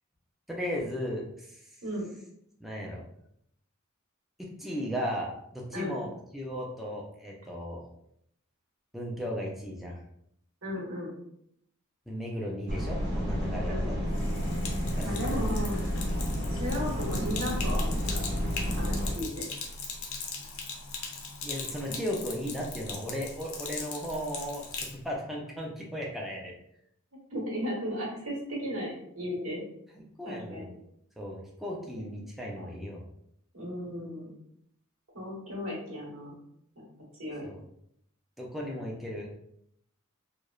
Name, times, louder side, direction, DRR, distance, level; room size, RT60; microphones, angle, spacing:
voice 1, 0.5-1.8 2.6-3.0 4.6-7.8 8.9-10.0 12.1-14.0 15.0-15.6 21.4-26.5 29.9-30.7 31.2-33.0 37.4-37.6 38.4-39.3, equal, ahead, -3 dB, 0.3 m, -36 dB
voice 2, 10.6-11.1 13.7-13.9 15.0-15.8 16.5-18.2 18.7-19.4 27.3-29.6 30.2-30.6 32.6-32.7 33.5-34.3 35.1-36.4 36.8-36.9 37.2-37.5, equal, 85° right, -4 dB, 1.1 m, -35 dB
sound 1, 12.7-19.1, equal, 55° right, 0.8 m, -30 dB
Sink (filling or washing), 14.0-25.0, left 4 dB, 80° left, 0.5 m, -39 dB
2.9 x 2.0 x 2.3 m, 0.73 s
head